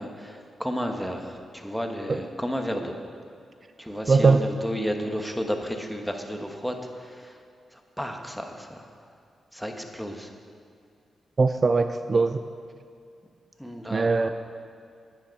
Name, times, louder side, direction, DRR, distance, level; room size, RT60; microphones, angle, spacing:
voice 1, 0.0-2.9 3.8-7.4 7.7-8.9 9.5-10.3 13.6-14.3, equal, ahead, 4 dB, 1.3 m, -32 dB
voice 2, 4.1-4.4 11.4-12.4 13.9-14.3, right 4 dB, 45° right, 9 dB, 0.4 m, -20 dB
9.8 x 9.7 x 5.3 m, 2.3 s
supercardioid pair, 55°, 0 cm